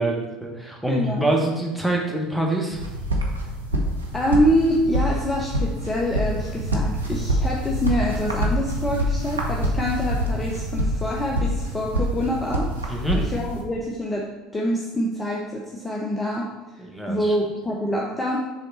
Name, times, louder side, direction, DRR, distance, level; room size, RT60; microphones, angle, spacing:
voice 1, 0.0-2.8 12.9-13.3 16.8-17.4, right 2 dB, ahead, 0 dB, 1.3 m, -25 dB
voice 2, 0.9-1.3 4.1-14.3 14.5-18.4, equal, 15° left, -2 dB, 0.8 m, -26 dB
sound 1, 2.7-13.6, equal, 90° right, 0.7 m, -26 dB
6.6 x 3.6 x 4.1 m, 1.2 s
figure-of-eight pair, 65°, 0 cm